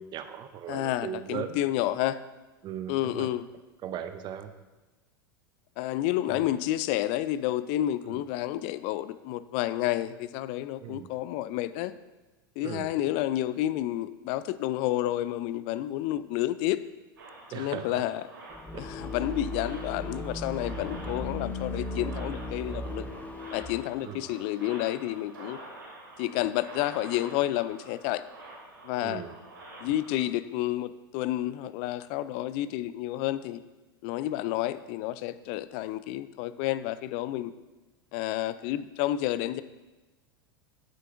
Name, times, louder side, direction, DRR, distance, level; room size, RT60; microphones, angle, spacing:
voice 1, 0.0-1.6 2.6-3.3 3.8-4.5 6.3-6.4 8.1-8.2 10.8-11.1 12.6-12.9 17.5-18.0 18.7-18.8 19.9-20.1 24.0-24.2 29.0-29.4, right 9 dB, 40° right, 9 dB, 0.7 m, -38 dB
voice 2, 0.7-2.2 2.9-3.5 5.8-11.9 12.6-16.8 17.5-18.2 18.7-23.0 23.5-25.6 26.2-28.2 28.8-29.2 29.8-33.6 34.0-37.5 38.1-39.6, left 14 dB, 50° left, 15 dB, 0.4 m, -30 dB
sound 1, 17.2-30.2, right 2 dB, 80° right, 2.5 m, -47 dB
sound 2, 18.5-23.7, left 1 dB, 15° left, 0.8 m, -36 dB
9.0 x 7.7 x 2.6 m, 1.1 s
hypercardioid pair, 90°, 12 cm